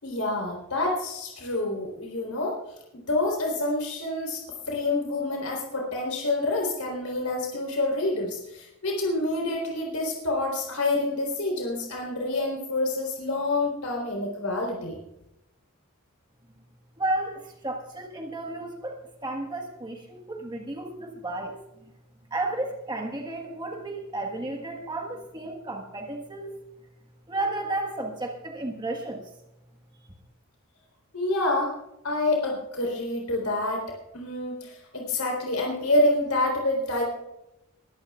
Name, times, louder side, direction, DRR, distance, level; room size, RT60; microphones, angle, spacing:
voice 1, 0.0-2.6 2.9-15.0 31.1-31.7 32.0-33.9 34.1-37.0, left 2 dB, 80° left, 0 dB, 3.8 m, -27 dB
voice 2, 17.0-21.5 21.8-21.9 22.3-26.5 27.3-29.2, right 2 dB, 20° right, 1 dB, 1.5 m, -33 dB
22.0 x 14.0 x 2.4 m, 0.88 s
head